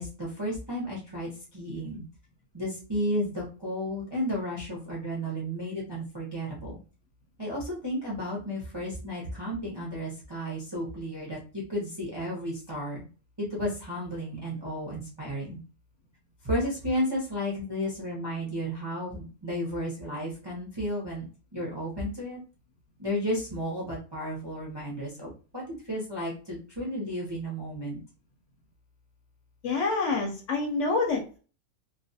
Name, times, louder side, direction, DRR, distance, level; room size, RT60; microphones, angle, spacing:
voice 1, 0.0-2.0 2.5-6.8 7.4-13.0 13.4-15.6 16.4-21.3 21.5-22.4 23.0-28.0, equal, 30° right, -5 dB, 0.4 m, -33 dB
voice 2, 29.6-31.4, left 3 dB, 65° left, 1 dB, 0.8 m, -27 dB
2.4 x 2.2 x 2.6 m, 0.37 s
omnidirectional pair, 1.5 m